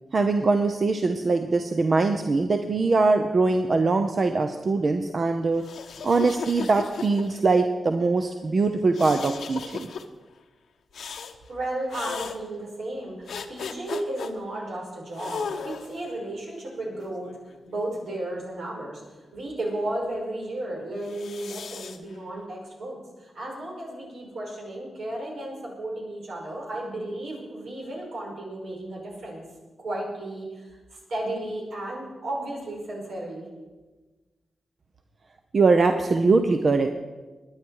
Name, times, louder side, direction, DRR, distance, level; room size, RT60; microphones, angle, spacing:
voice 1, 0.1-5.6 6.0-9.9 35.5-37.0, right 3 dB, 50° right, 6 dB, 0.8 m, -22 dB
sound 1, 5.5-7.6 8.9-10.0 10.9-11.4 11.9-12.4 13.3-14.3 15.2-16.0 16.8-18.0 21.0-22.0, left 6 dB, 85° left, 0.9 m, -36 dB
voice 2, 11.5-29.4 29.8-33.5, right 1 dB, 85° right, -2 dB, 5.3 m, -34 dB
23.0 x 9.8 x 4.8 m, 1.2 s
wide cardioid pair, 95°, 0 cm